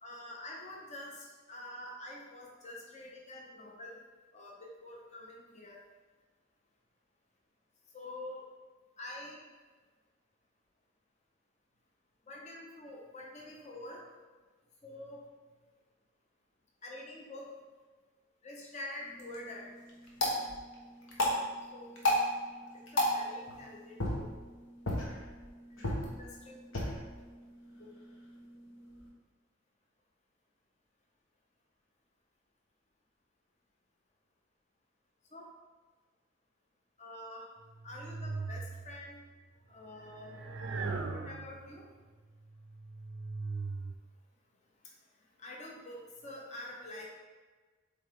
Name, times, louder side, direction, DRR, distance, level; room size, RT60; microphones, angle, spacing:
voice 1, 0.0-4.0 4.3-5.8 7.9-8.4 9.0-9.4 12.3-14.0 14.8-15.2 16.8-17.5 18.4-19.7 21.7-22.2 22.9-24.3 25.8-26.6 27.8-27.9 35.3-35.5 37.0-37.5 37.8-39.2 39.7-40.4 41.1-41.8 45.4-47.1, left 1 dB, 35° left, -2 dB, 0.9 m, -46 dB
sound 1, 19.0-29.1, left 1 dB, 70° left, 1.4 m, -36 dB
sound 2, 37.8-39.2 40.0-41.8 42.5-43.9, right 3 dB, 60° right, 0.5 m, -39 dB
7.8 x 3.8 x 3.7 m, 1.4 s
head